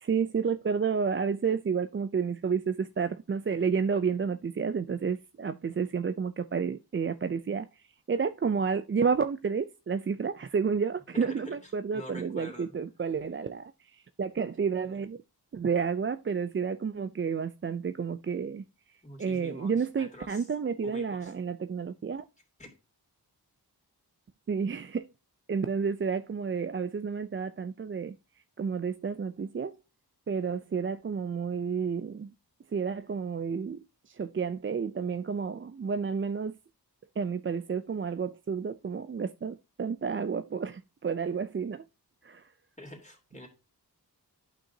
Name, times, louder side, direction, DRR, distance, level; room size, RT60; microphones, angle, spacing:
voice 1, 0.0-7.7 8.1-15.2 15.5-18.7 19.2-22.3 24.5-25.1 25.5-28.2 28.6-29.7 30.3-32.3 32.7-36.6 37.2-41.8 42.2-42.4, right 6 dB, 30° right, 0.4 m, -30 dB
voice 2, 11.2-12.7 19.0-20.5 20.8-21.4 22.6-22.7 42.8-43.5, left 1 dB, 15° left, 2.9 m, -46 dB
11.0 x 5.8 x 2.7 m
wide cardioid pair, 75°, 41 cm